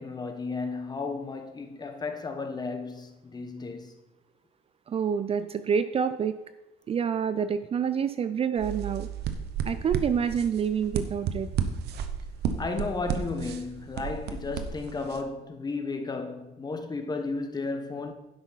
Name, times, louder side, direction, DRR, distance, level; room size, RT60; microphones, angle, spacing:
voice 1, 0.0-3.9 12.6-18.1, left 3 dB, 25° left, 1.2 m, -33 dB
voice 2, 4.9-6.3 6.9-9.1 9.6-11.5, right 7 dB, 35° right, 0.4 m, -27 dB
sound 1, 8.6-15.2, right 7 dB, 75° right, 0.9 m, -33 dB
10.5 x 8.0 x 4.1 m
cardioid pair, 110°, 17 cm